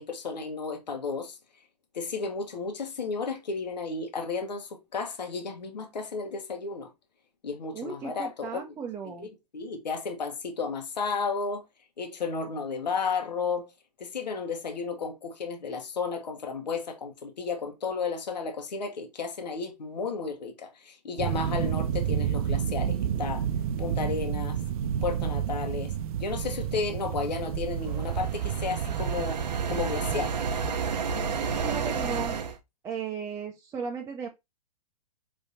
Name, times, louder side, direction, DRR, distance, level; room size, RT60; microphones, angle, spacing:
voice 1, 0.0-1.4 1.9-6.9 7.4-8.7 9.0-11.6 12.0-13.7 14.0-23.4 23.8-24.6 25.0-25.9 26.2-29.4 29.7-30.3, left 5 dB, 85° left, 1.3 m, -33 dB
voice 2, 7.7-9.3 31.6-32.4 32.8-34.3, right 6 dB, 15° right, 0.6 m, -35 dB
sound 1, 21.2-30.2, right 9 dB, 60° right, 0.6 m, -30 dB
sound 2, 27.9-32.6, right 5 dB, 85° right, 0.8 m, -31 dB
5.3 x 3.5 x 2.7 m
hypercardioid pair, 130°, 21 cm